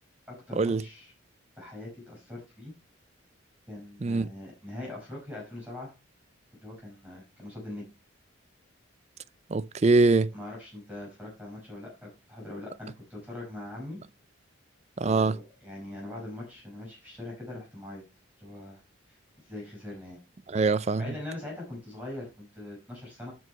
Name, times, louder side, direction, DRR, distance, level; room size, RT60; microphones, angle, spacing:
voice 1, 0.3-1.1 1.6-2.7 3.7-5.9 6.5-7.9 10.3-14.0 15.0-18.0 18.4-19.2 19.5-20.2 21.0-23.3, left 1 dB, 10° right, 5.2 m, -42 dB
voice 2, 9.5-10.3 15.0-15.4 20.5-21.0, right 3 dB, 30° right, 0.4 m, -23 dB
12.5 x 4.8 x 5.5 m
head